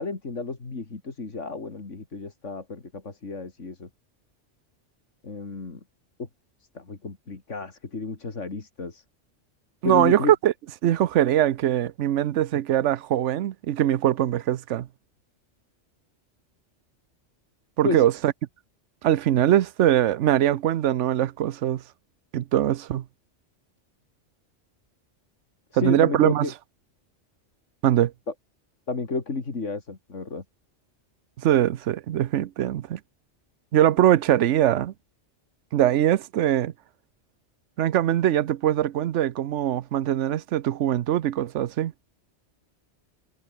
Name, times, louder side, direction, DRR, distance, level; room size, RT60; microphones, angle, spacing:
voice 1, 0.0-3.9 5.2-5.8 6.2-6.3 6.7-9.0 9.8-10.3 17.8-18.0 25.7-26.5 28.9-30.4, left 3 dB, 85° left, 3.0 m, -31 dB
voice 2, 9.8-10.5 10.8-14.9 17.8-18.3 19.0-21.8 22.3-23.0 25.7-26.5 27.8-28.1 31.4-33.0 33.7-34.9 35.7-36.7 37.8-41.9, right 12 dB, 80° right, 1.0 m, -22 dB
omnidirectional pair, 1.2 m